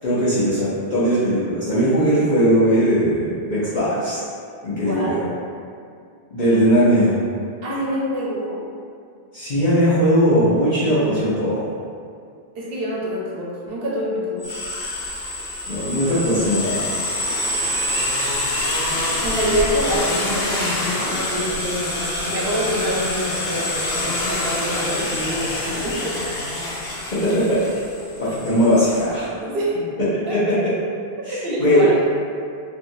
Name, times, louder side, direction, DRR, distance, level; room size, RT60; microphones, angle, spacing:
voice 1, 0.0-4.2 4.6-5.2 6.3-7.1 9.3-11.6 15.7-16.8 27.3-27.6 28.2-29.3 30.3-30.7 31.3-31.4 31.6-31.8, equal, 50° left, -13 dB, 0.9 m, -19 dB
voice 2, 4.8-5.3 7.6-8.6 12.6-14.4 19.2-26.1 29.3-29.8 30.3-30.4 31.3-32.0, equal, 70° right, -5 dB, 0.9 m, -26 dB
sound 1, 14.4-29.1, left 1 dB, 85° left, 1.0 m, -26 dB
3.3 x 2.6 x 2.6 m, 2.3 s
omnidirectional pair, 1.0 m